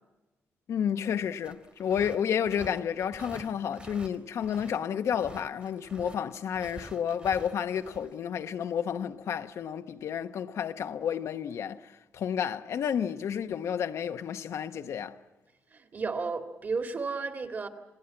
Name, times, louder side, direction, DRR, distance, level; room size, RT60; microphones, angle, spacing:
voice 1, 0.7-15.2, left 8 dB, 70° left, 0.9 m, -31 dB
sound 1, 1.4-4.8 5.1-8.1, right 2 dB, 25° right, 1.7 m, -48 dB
voice 2, 15.7-17.7, right 4 dB, 40° right, 2.0 m, -33 dB
28.0 x 17.5 x 8.7 m
cardioid pair, 130°, 5 cm